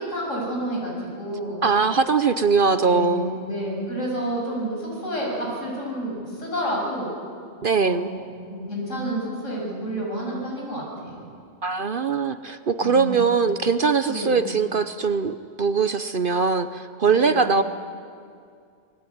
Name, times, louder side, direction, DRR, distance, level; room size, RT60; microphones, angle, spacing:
voice 1, 0.0-1.7 2.8-7.1 7.8-11.2 12.8-13.2 14.1-14.5 17.1-17.5, right 1 dB, 75° left, -2 dB, 7.6 m, -30 dB
voice 2, 1.6-3.4 7.6-8.1 11.6-17.6, right 5 dB, 50° right, 11 dB, 0.8 m, -21 dB
26.5 x 21.0 x 9.4 m, 2.3 s
omnidirectional pair, 1.3 m